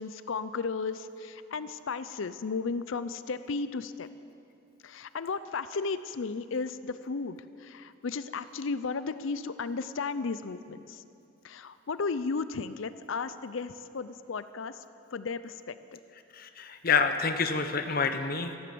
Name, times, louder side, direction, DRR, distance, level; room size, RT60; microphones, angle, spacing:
voice 1, 0.0-4.1 4.8-11.0 11.4-14.8 15.1-16.0, left 4 dB, 65° left, 13 dB, 0.5 m, -34 dB
voice 2, 16.3-18.6, left 5 dB, 45° left, 8 dB, 0.9 m, -28 dB
14.0 x 12.0 x 7.8 m, 2.6 s
head